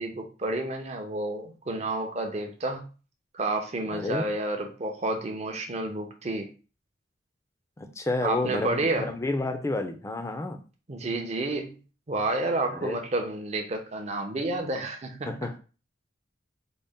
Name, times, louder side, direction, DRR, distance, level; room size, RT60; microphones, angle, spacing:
voice 1, 0.0-2.8 3.3-6.5 8.2-9.1 10.9-11.8 12.1-15.4, right 2 dB, 35° right, 0.6 m, -30 dB
voice 2, 3.9-4.3 7.8-10.6 12.7-13.0 15.3-15.6, left 2 dB, 15° left, 0.4 m, -30 dB
4.0 x 2.0 x 3.5 m
head